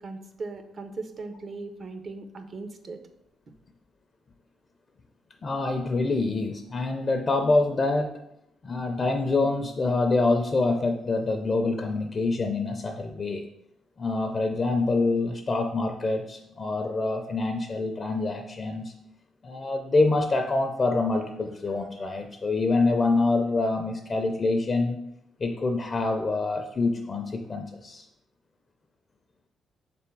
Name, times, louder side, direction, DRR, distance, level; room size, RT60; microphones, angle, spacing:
voice 1, 0.0-3.0, right 3 dB, 45° right, 7 dB, 0.5 m, -38 dB
voice 2, 5.4-8.1 8.6-13.4 14.0-18.9 19.4-25.0 25.4-28.0, left 3 dB, 35° left, 5 dB, 0.4 m, -26 dB
3.4 x 3.4 x 4.5 m, 0.81 s
cardioid pair, 90°, 0 cm